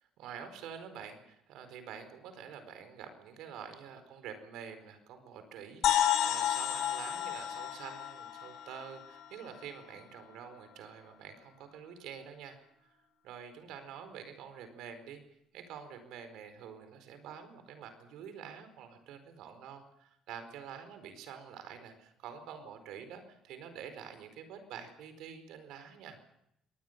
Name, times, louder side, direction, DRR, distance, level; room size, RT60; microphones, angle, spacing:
voice 1, 0.2-12.6 13.2-15.2 15.5-26.2, right 7 dB, 80° right, 9 dB, 4.6 m, -47 dB
sound 1, 5.8-9.6, left 11 dB, 80° left, 3.0 m, -31 dB
26.0 x 19.5 x 6.7 m, 0.77 s
supercardioid pair, 75°, 0 cm